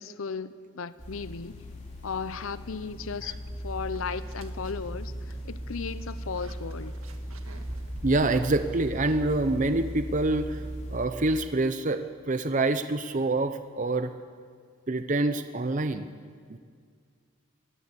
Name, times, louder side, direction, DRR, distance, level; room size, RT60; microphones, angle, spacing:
voice 1, 0.0-1.7 2.0-3.4 3.6-7.0, left 5 dB, 75° left, 14 dB, 0.7 m, -35 dB
sound 1, 1.0-11.1, equal, 35° left, 3.9 m, -38 dB
sound 2, 4.0-10.3, right 1 dB, 85° right, 1.8 m, -47 dB
voice 2, 8.0-14.1 14.9-16.1 16.5-16.6, right 2 dB, 35° right, 9 dB, 0.6 m, -26 dB
21.5 x 18.0 x 8.2 m, 2.1 s
head